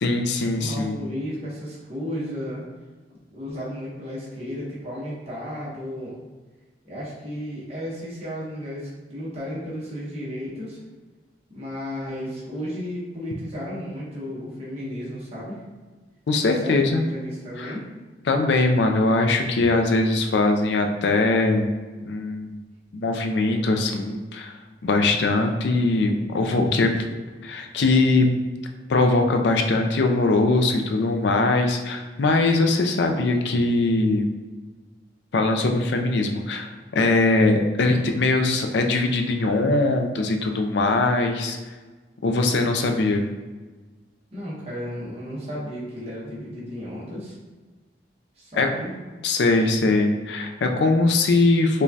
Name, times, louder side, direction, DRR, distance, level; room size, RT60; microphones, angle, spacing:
voice 1, 0.0-1.0 16.3-17.0 17.6-17.7 18.3-21.7 22.0-22.6 22.9-24.5 24.8-27.1 27.4-28.3 28.9-34.3 35.3-41.6 42.2-43.3 48.6-48.7 49.2-51.8, left 2 dB, 75° left, 5 dB, 0.4 m, -21 dB
voice 2, 0.6-2.6 3.3-6.2 6.8-10.8 11.5-15.6 16.4-17.9 44.3-47.3 48.4-49.1, equal, 35° right, -7 dB, 0.9 m, -33 dB
4.9 x 2.2 x 2.7 m, 1.3 s
head